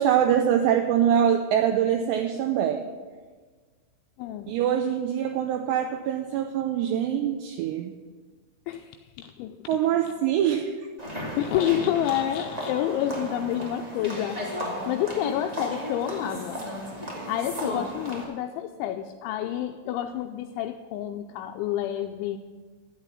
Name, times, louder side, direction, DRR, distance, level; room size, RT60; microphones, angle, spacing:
voice 1, 0.0-2.9 4.5-8.0 9.7-10.7, right 9 dB, 85° right, 4 dB, 2.4 m, -24 dB
voice 2, 4.2-4.6 8.7-8.9 9.2-9.6 11.4-14.5 14.9-16.7 17.3-22.4, left 11 dB, 85° left, 5 dB, 2.7 m, -29 dB
sound 1, 11.0-18.2, equal, 65° right, 0.4 m, -34 dB
11.5 x 8.0 x 9.8 m, 1.4 s
omnidirectional pair, 5.8 m